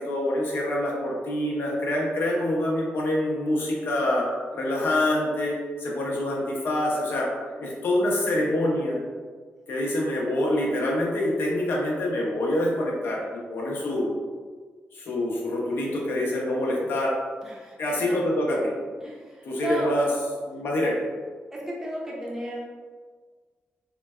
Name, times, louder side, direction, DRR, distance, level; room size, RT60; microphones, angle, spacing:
voice 1, 0.0-4.3 4.5-7.3 7.6-9.0 9.7-14.1 14.9-17.1 17.8-18.7 19.4-20.1 20.4-21.0, left 1 dB, 65° left, -3 dB, 0.7 m, -26 dB
voice 2, 17.4-17.8 19.0-19.9 21.5-22.7, right 1 dB, 10° right, -4 dB, 0.6 m, -34 dB
3.8 x 2.2 x 2.3 m, 1.5 s
wide cardioid pair, 145°, 4 cm